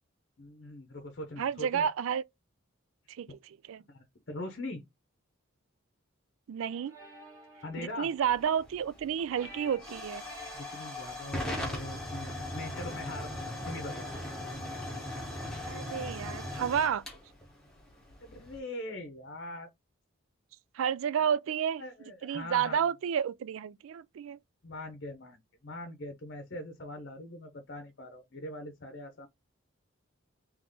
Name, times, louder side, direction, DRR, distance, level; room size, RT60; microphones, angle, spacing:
voice 1, 0.4-1.9 3.9-4.8 7.6-8.1 10.5-13.4 13.6-14.1 18.2-19.7 21.2-21.4 21.8-22.8 24.6-29.3, left 1 dB, 50° left, 0.7 m, -42 dB
voice 2, 1.4-2.2 3.2-3.3 3.7-3.8 6.5-6.9 7.8-10.2 15.6-17.0 20.7-21.8 22.2-24.4, right 8 dB, 70° right, 0.3 m, -30 dB
sound 1, 6.7-12.7, equal, 15° right, 1.9 m, -53 dB
Hiss / Fire / Tick, 8.2-18.6, left 1 dB, 5° left, 1.2 m, -39 dB
3.6 x 3.0 x 3.8 m
head